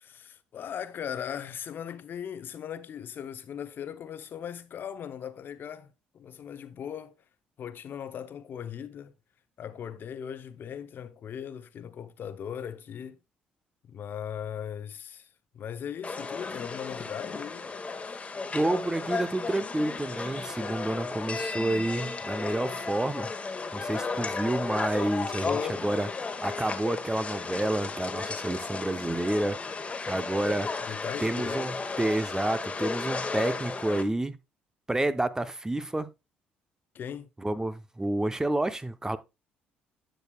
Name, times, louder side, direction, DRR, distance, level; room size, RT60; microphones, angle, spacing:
voice 1, 0.0-7.2 7.6-9.1 9.6-13.2 13.8-15.3 15.5-17.7 25.4-25.8 30.9-31.6 36.9-37.3, left 8 dB, 55° left, 0.8 m, -38 dB
sound 1, 16.0-34.0, left 4 dB, 30° left, 1.3 m, -34 dB
voice 2, 18.5-23.3 23.7-26.1 26.4-30.7 31.2-34.3 34.9-36.1 37.4-39.2, right 1 dB, 15° right, 0.8 m, -29 dB
10.0 x 6.5 x 2.3 m
supercardioid pair, 65°, 4 cm